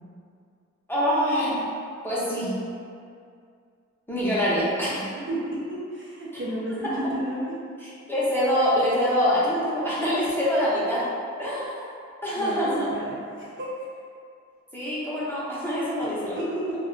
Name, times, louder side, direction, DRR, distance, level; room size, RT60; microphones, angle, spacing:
voice 1, 0.9-1.6 2.0-2.6 4.1-5.0 6.8-7.0 7.8-11.0 11.4-11.9 12.2-12.9 14.7-16.4, equal, 5° left, -10 dB, 0.7 m, -25 dB
voice 2, 5.9-7.6 12.4-13.7 16.3-16.8, right 1 dB, 40° right, -7 dB, 0.5 m, -32 dB
2.3 x 2.2 x 3.7 m, 2.3 s
wide cardioid pair, 125°, 29 cm